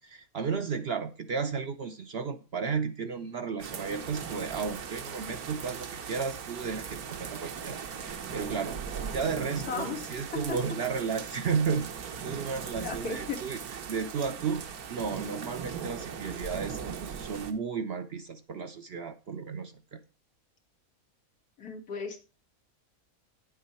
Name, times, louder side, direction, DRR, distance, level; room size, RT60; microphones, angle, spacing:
voice 1, 0.0-13.6 13.9-14.6 14.9-20.0, right 5 dB, 60° right, 0.7 m, -33 dB
sound 1, 3.6-17.5, right 7 dB, 85° right, 1.5 m, -39 dB
voice 2, 9.7-10.0 10.3-10.6 12.8-13.4 21.6-22.2, left 5 dB, 85° left, 2.3 m, -35 dB
9.5 x 7.4 x 4.2 m
omnidirectional pair, 1.5 m